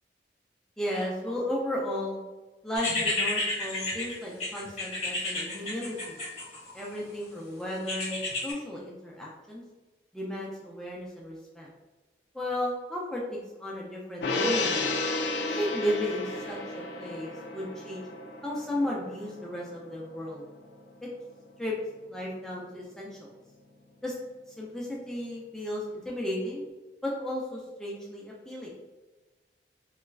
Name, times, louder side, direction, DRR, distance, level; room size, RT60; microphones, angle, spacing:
voice 1, 0.8-2.2 2.6-6.2 6.7-8.2 8.4-9.6 10.1-11.7 12.3-14.9 15.5-18.0 18.4-20.4 21.0-21.1 21.6-21.7 22.1-23.3 24.0-24.1 24.5-26.6 27.0-28.7, left 1 dB, 5° left, -4 dB, 0.3 m, -34 dB
sound 1, 2.8-6.9 7.9-8.5, left 2 dB, 35° left, 0.9 m, -31 dB
Gong, 14.2-20.8 21.2-21.3, left 2 dB, 75° left, 0.4 m, -33 dB
3.0 x 2.3 x 2.3 m, 1.2 s
head